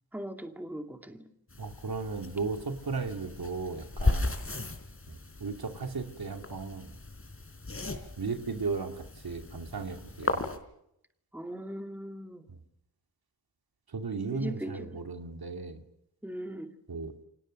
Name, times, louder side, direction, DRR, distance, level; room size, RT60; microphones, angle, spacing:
voice 1, 0.1-1.3 11.3-12.5 14.3-15.0 16.2-16.7, right 1 dB, 5° right, 2.5 m, -39 dB
sound 1, 1.5-10.6, left 2 dB, 35° left, 4.1 m, -36 dB
voice 2, 1.6-4.4 5.1-6.9 8.2-10.5 12.5-12.6 13.9-15.8 16.9-17.1, right 4 dB, 70° right, 2.7 m, -36 dB
30.0 x 25.0 x 6.6 m
wide cardioid pair, 95°, 39 cm